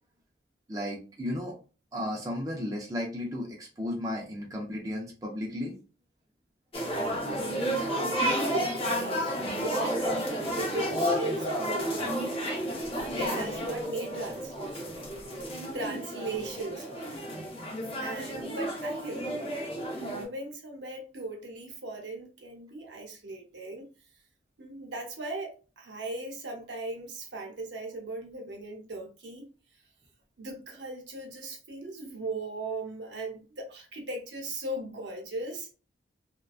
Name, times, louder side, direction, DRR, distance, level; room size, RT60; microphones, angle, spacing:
voice 1, 0.7-1.5 1.9-5.7, left 1 dB, 20° right, 0.4 m, -34 dB
sound 1, 6.7-20.3, equal, 30° left, 0.6 m, -31 dB
voice 2, 7.2-7.9 8.4-12.2 12.6-12.9 13.2-15.1 15.7-17.3 18.0-19.5 19.9-23.9 24.6-29.5 30.4-35.7, right 2 dB, 70° right, 0.7 m, -38 dB
2.5 x 2.2 x 2.3 m
head